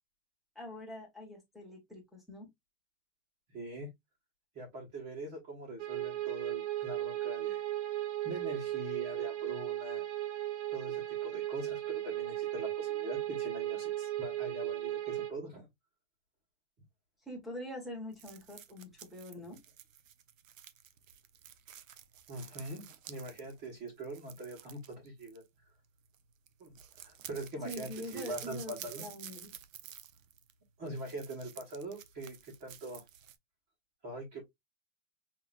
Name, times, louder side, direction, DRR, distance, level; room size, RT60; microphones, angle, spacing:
voice 1, 0.5-2.5 17.3-19.6 27.6-29.5, left 1 dB, ahead, 1.2 m, -44 dB
voice 2, 3.5-3.9 4.5-7.6 8.2-10.0 10.7-15.7 22.3-25.4 26.6-26.7 27.0-29.1 30.8-33.0 34.0-34.4, right 1 dB, 20° right, 1.2 m, -43 dB
sound 1, 5.8-15.3, right 14 dB, 60° right, 1.0 m, -36 dB
sound 2, 18.1-25.8 26.0-26.2 26.5-33.4, right 10 dB, 85° right, 0.9 m, -51 dB
5.8 x 2.8 x 2.4 m
supercardioid pair, 170°, 39 cm